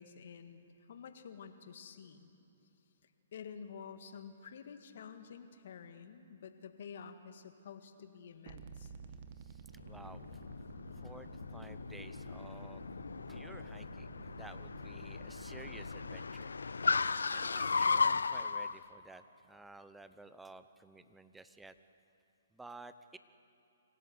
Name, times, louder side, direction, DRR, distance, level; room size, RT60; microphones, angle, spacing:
voice 1, 0.0-2.3 3.0-8.9, left 6 dB, 60° left, 8 dB, 1.7 m, -50 dB
sound 1, 8.5-16.2, right 7 dB, 45° right, 1.4 m, -53 dB
voice 2, 9.4-10.3 11.0-12.9 13.3-16.5 17.3-21.7 22.5-23.2, right 2 dB, 5° right, 12 dB, 0.8 m, -54 dB
Car, 9.8-18.7, left 4 dB, 85° left, 0.5 m, -36 dB
26.0 x 17.0 x 8.0 m, 2.9 s
hypercardioid pair, 140°, 0 cm